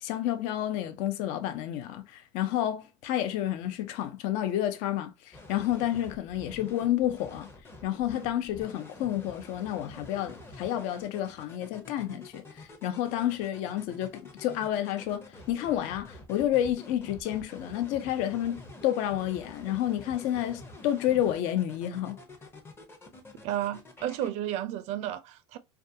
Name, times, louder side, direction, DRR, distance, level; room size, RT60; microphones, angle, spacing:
voice 1, 0.0-7.5 7.8-22.2, left 12 dB, 60° left, 0.4 m, -30 dB
sound 1, 5.3-24.3, left 2 dB, 15° left, 0.6 m, -48 dB
voice 2, 23.4-25.6, right 12 dB, 50° right, 0.4 m, -32 dB
2.3 x 2.3 x 2.6 m
supercardioid pair, 105°, 15 cm